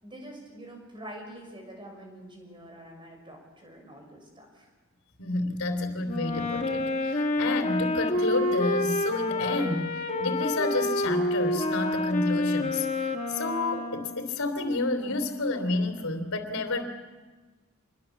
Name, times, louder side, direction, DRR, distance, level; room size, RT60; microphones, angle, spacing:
voice 1, 0.0-4.7, right 1 dB, 25° right, 2 dB, 6.2 m, -45 dB
voice 2, 5.2-16.9, left 2 dB, 90° left, 5 dB, 3.1 m, -30 dB
Wind instrument woodwind instrument, 6.0-14.4, left 2 dB, 35° left, 1.6 m, -28 dB
26.5 x 22.0 x 7.2 m, 1.3 s
head